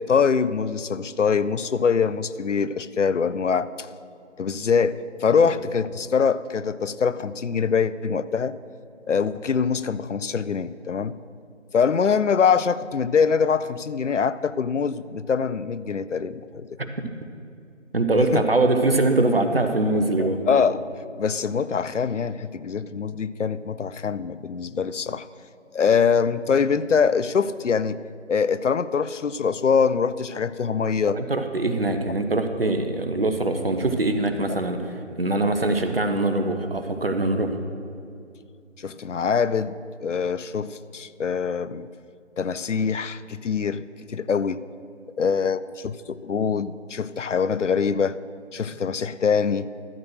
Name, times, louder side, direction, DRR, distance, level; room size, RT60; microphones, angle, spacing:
voice 1, 0.0-3.9 4.4-8.6 9.1-11.2 11.7-16.7 18.3-18.4 20.2-20.8 21.2-25.3 25.7-28.0 28.3-31.2 38.8-41.9 42.4-43.8 44.1-44.6 45.2-48.2 48.5-49.7, left 6 dB, 75° left, 16 dB, 0.5 m, -23 dB
voice 2, 17.9-20.4 31.1-37.5, right 2 dB, 50° right, 7 dB, 0.9 m, -23 dB
12.5 x 6.2 x 6.4 m, 2.5 s
figure-of-eight pair, 165°, 37 cm